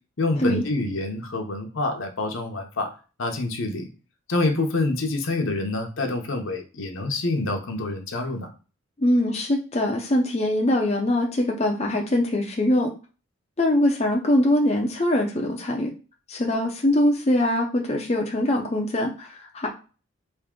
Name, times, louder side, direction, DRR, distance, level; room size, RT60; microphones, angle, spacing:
voice 1, 0.2-2.9 3.2-3.9 4.3-8.5, left 2 dB, 70° left, 4 dB, 0.8 m, -27 dB
voice 2, 9.0-12.9 13.6-15.9 16.3-19.7, left 1 dB, 30° left, 0 dB, 0.5 m, -22 dB
3.5 x 2.7 x 3.7 m, 0.35 s
head